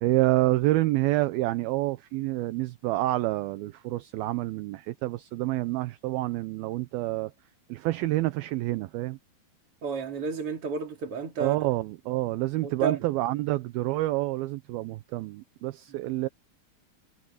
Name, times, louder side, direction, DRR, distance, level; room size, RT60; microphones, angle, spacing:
voice 1, 0.0-7.3 7.7-9.2 11.4-16.3, right 18 dB, 75° right, 2.5 m, -28 dB
voice 2, 9.8-11.6 12.6-13.0, right 5 dB, 40° right, 3.2 m, -31 dB
omnidirectional pair, 4.7 m